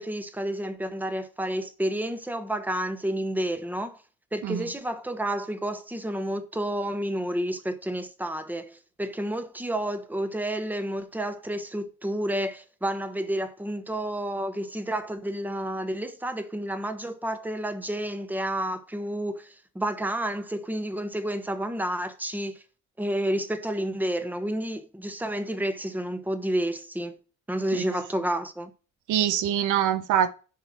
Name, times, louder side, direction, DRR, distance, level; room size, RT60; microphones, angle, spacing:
voice 1, 0.0-4.0 4.3-22.6 23.0-27.2 27.5-28.7, right 1 dB, 5° right, 1.1 m, -30 dB
voice 2, 29.1-30.3, right 10 dB, 85° right, 0.8 m, -24 dB
10.5 x 3.4 x 6.0 m
cardioid pair, 90°, 30 cm